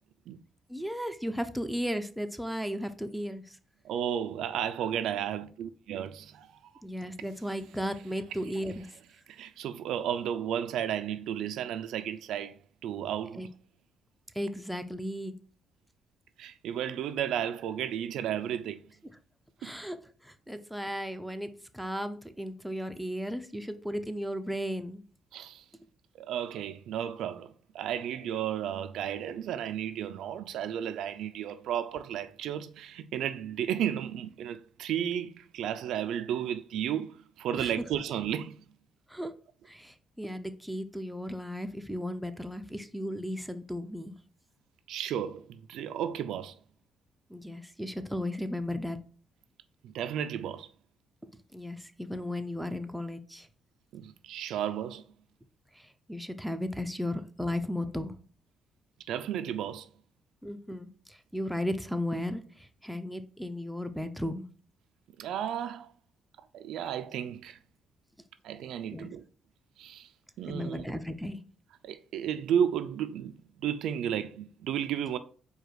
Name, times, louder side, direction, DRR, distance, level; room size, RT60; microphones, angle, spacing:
voice 1, 0.7-3.6 6.8-8.9 13.4-13.5 14.3-15.3 19.6-20.0 20.2-25.0 37.6-37.7 39.1-39.3 39.7-44.1 47.3-49.0 51.5-53.5 55.7-58.2 60.4-64.5 68.8-69.1 70.5-71.4, equal, ahead, 0.5 m, -35 dB
voice 2, 3.8-6.6 9.3-13.4 16.4-18.9 19.6-19.7 25.3-25.6 26.1-38.6 44.9-46.5 49.8-50.7 53.9-55.0 59.1-59.9 65.2-65.9 66.5-67.6 68.4-69.2 69.8-70.1 70.4-70.9 71.8-75.2, right 9 dB, 80° right, 0.3 m, -33 dB
4.7 x 2.3 x 4.8 m
cardioid pair, 90°, 0 cm